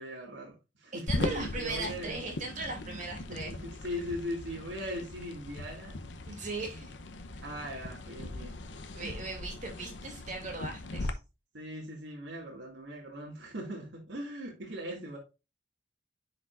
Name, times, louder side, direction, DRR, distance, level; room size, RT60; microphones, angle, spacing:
voice 1, 0.0-2.2 2.5-3.0 3.3-6.0 7.4-8.6 9.0-9.2 11.5-15.2, equal, 80° right, 2.2 m, -40 dB
voice 2, 0.9-3.5 6.3-6.9 7.3-7.4 8.9-11.2, right 2 dB, 45° right, 2.6 m, -38 dB
sound 1, 1.1-11.1, left 2 dB, 75° left, 0.8 m, -39 dB
9.6 x 5.0 x 2.5 m
head